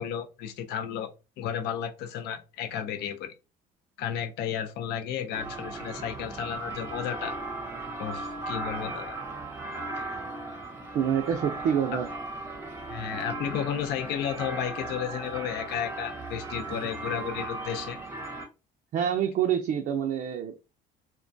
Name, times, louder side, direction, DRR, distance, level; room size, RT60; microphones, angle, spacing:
voice 1, 0.0-3.3 4.0-7.4 8.0-9.2 9.9-10.0 12.9-18.0, left 9 dB, 75° left, 0.4 m, -33 dB
sound 1, 5.3-18.5, right 2 dB, 15° right, 0.6 m, -37 dB
voice 2, 10.9-12.1 16.7-16.8 18.9-20.5, right 9 dB, 55° right, 0.4 m, -27 dB
2.2 x 2.2 x 2.5 m
cardioid pair, 110°, 17 cm